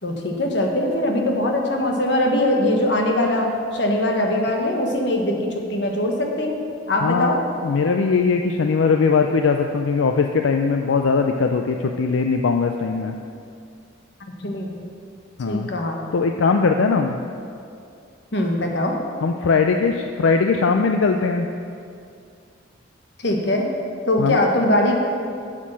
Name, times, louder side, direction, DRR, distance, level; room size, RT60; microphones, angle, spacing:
voice 1, 0.0-6.6 6.9-7.4 14.4-14.7 15.4-16.0 18.3-18.9 23.2-23.6 24.1-24.9, left 1 dB, 60° left, 2 dB, 1.3 m, -21 dB
voice 2, 7.0-7.4 7.6-13.2 15.4-15.7 16.1-17.2 19.2-21.5 24.2-24.4, left 4 dB, 80° left, 5 dB, 0.4 m, -20 dB
8.4 x 7.4 x 6.2 m, 2.4 s
head